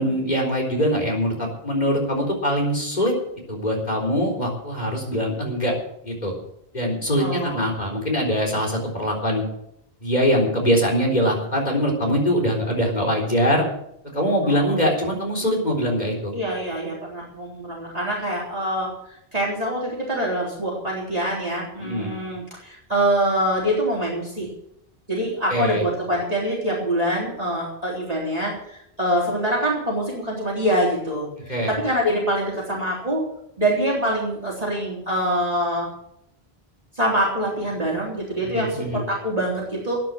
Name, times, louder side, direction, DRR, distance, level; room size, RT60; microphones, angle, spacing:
voice 1, 0.0-3.2 3.5-5.7 6.0-6.3 6.7-9.4 10.0-13.6 14.1-16.3 21.8-22.1 25.5-25.8 31.5-31.7 38.4-39.0, equal, 45° left, 0 dB, 4.1 m, -23 dB
voice 2, 7.2-7.6 14.4-14.8 16.3-18.9 19.3-24.5 25.1-33.2 33.6-35.9 37.0-40.1, right 1 dB, 40° right, -5 dB, 3.8 m, -25 dB
13.5 x 9.6 x 7.6 m, 0.75 s
omnidirectional pair, 1.0 m